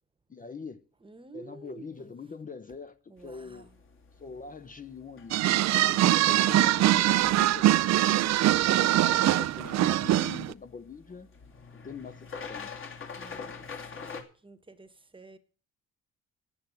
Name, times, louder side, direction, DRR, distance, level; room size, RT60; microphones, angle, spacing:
voice 1, 0.3-0.8 1.3-3.7 4.2-5.4 5.8-8.2 8.7-11.3 11.7-12.7, left 5 dB, 25° left, 0.8 m, -43 dB
voice 2, 1.0-2.1 3.1-3.7 13.2-13.6 13.9-15.4, right 3 dB, 15° right, 1.3 m, -51 dB
sound 1, 3.2-14.2, left 5 dB, 45° left, 2.6 m, -46 dB
sound 2, 5.3-10.5, right 14 dB, 60° right, 0.5 m, -23 dB
9.3 x 8.0 x 9.2 m
cardioid pair, 90°, 30 cm